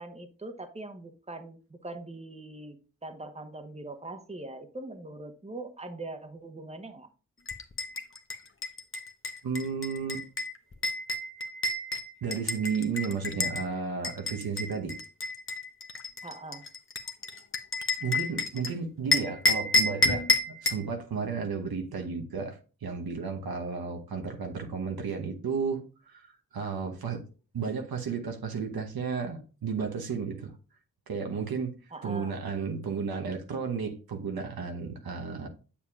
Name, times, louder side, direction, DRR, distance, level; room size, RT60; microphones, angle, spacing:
voice 1, 0.0-2.8 3.0-7.1 16.2-16.6 31.9-32.3, right 2 dB, 20° right, 1.0 m, -42 dB
sound 1, 7.5-13.6 14.0-18.7 19.1-20.9, left 2 dB, 35° left, 0.9 m, -29 dB
voice 2, 9.4-10.2 12.2-15.0 18.0-27.2 27.5-30.5 31.1-31.7 32.0-35.5, right 5 dB, 80° right, 1.0 m, -33 dB
7.2 x 7.0 x 2.4 m
cardioid pair, 40°, 36 cm